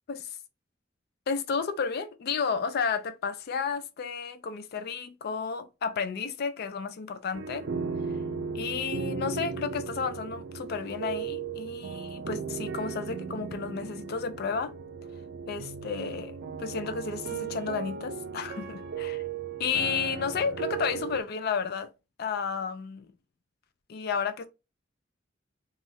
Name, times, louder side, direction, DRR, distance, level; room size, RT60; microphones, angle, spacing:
voice 1, 1.3-7.7 8.5-14.7 15.5-19.2 19.6-21.9 22.2-23.1 23.9-24.5, left 5 dB, 55° left, 0.4 m, -32 dB
sound 1, 7.3-21.2, right 6 dB, 60° right, 0.4 m, -36 dB
3.1 x 2.4 x 2.6 m
head